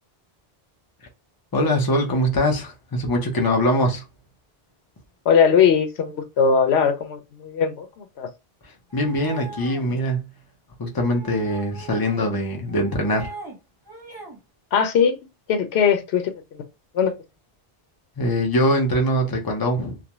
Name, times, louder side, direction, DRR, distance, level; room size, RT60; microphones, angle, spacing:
voice 1, 1.5-4.0 8.6-10.2 10.8-13.3 18.2-20.0, equal, 25° left, 0.6 m, -22 dB
voice 2, 5.3-8.3 14.7-15.2 15.5-16.6 16.9-17.1, left 6 dB, 85° left, 0.9 m, -20 dB
sound 1, 8.9-10.0 11.0-12.3 12.7-13.6 13.9-14.4, right 3 dB, 25° right, 0.9 m, -40 dB
2.5 x 2.1 x 2.9 m
omnidirectional pair, 1.1 m